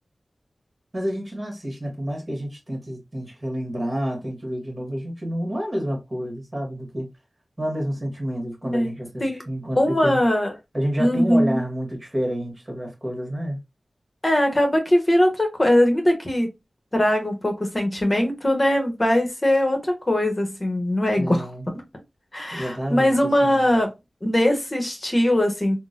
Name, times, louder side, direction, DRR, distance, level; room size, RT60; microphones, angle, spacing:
voice 1, 0.9-7.1 7.6-10.2 10.7-13.6 21.2-21.6 22.5-23.7, equal, 30° right, 1.6 m, -29 dB
voice 2, 9.7-10.5 11.0-11.6 14.2-16.5 16.9-21.5 22.3-23.9 24.2-25.8, left 1 dB, 35° left, 1.0 m, -21 dB
3.7 x 2.2 x 2.6 m
wide cardioid pair, 65°, 0 cm